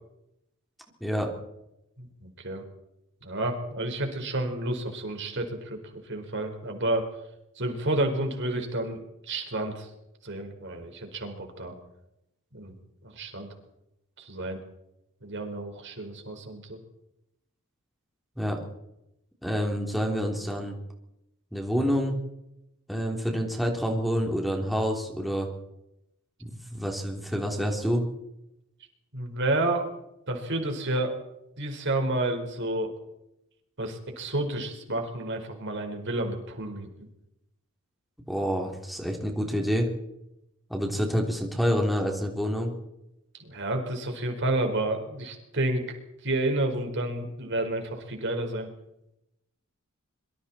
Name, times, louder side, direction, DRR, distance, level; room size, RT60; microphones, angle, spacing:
voice 1, 2.0-2.6 3.2-7.1 7.6-9.9 10.2-11.7 12.5-12.7 13.0-13.5 14.2-14.6 15.2-16.8 29.1-29.9 30.3-31.2 31.6-32.9 33.8-36.9 43.4-46.0 46.2-48.7, right 1 dB, 55° right, 4 dB, 4.6 m, -30 dB
voice 2, 19.4-20.7 21.5-22.2 22.9-25.5 26.4-28.0 38.3-39.9 40.7-42.7, equal, ahead, 1 dB, 3.3 m, -27 dB
26.0 x 23.5 x 4.4 m, 0.85 s
head